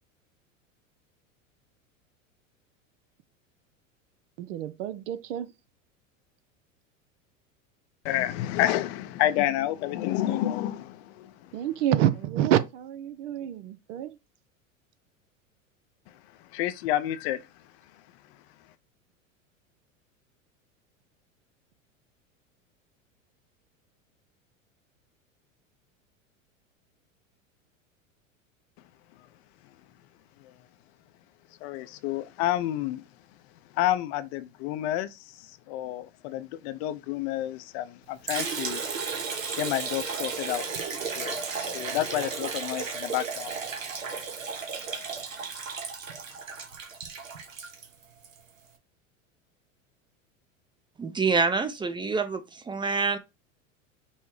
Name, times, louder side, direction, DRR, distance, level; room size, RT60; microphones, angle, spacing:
voice 1, 4.4-5.5 11.5-14.2, right 11 dB, 65° right, 0.7 m, -27 dB
voice 2, 8.0-11.5 16.5-17.5 30.4-30.5 31.6-33.0 33.7-38.8 39.5-43.5 44.9-45.1, left 13 dB, 55° left, 0.6 m, -30 dB
Liquid, 38.3-48.4, right 5 dB, 80° right, 1.2 m, -34 dB
voice 3, 51.0-53.2, right 4 dB, 10° right, 0.6 m, -26 dB
5.5 x 2.1 x 4.6 m
hypercardioid pair, 90°, 40 cm